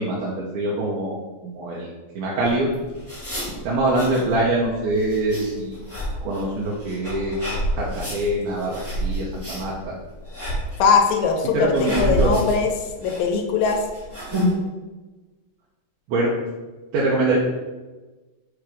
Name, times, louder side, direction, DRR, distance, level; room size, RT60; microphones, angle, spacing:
voice 1, 0.0-1.9 2.1-2.7 3.6-5.8 6.2-9.9 11.5-12.3 16.1-16.3 16.9-17.4, right 2 dB, 80° right, -5 dB, 2.7 m, -24 dB
sound 1, 2.4-14.5, equal, 15° right, 0.5 m, -29 dB
voice 2, 10.8-12.7 13.0-13.8, left 5 dB, 80° left, 3 dB, 2.2 m, -20 dB
6.5 x 3.5 x 4.9 m, 1.2 s
omnidirectional pair, 4.4 m